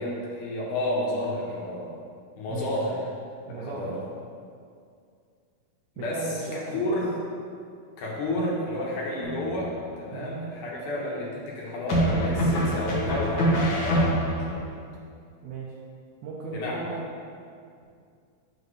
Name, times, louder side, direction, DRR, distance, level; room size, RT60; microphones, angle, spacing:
voice 1, 0.0-1.9 2.4-3.0 3.5-4.0 6.0-7.1 8.0-14.7 16.5-16.9, left 1 dB, 80° left, -5 dB, 2.5 m, -31 dB
voice 2, 3.5-3.9 6.0-7.0 10.1-10.3 15.4-15.7 16.2-17.0, right 4 dB, 75° right, -5 dB, 2.0 m, -36 dB
sound 1, 9.2-9.8 11.9-14.6, equal, 55° left, 1.6 m, -25 dB
7.7 x 7.0 x 3.2 m, 2.3 s
omnidirectional pair, 3.5 m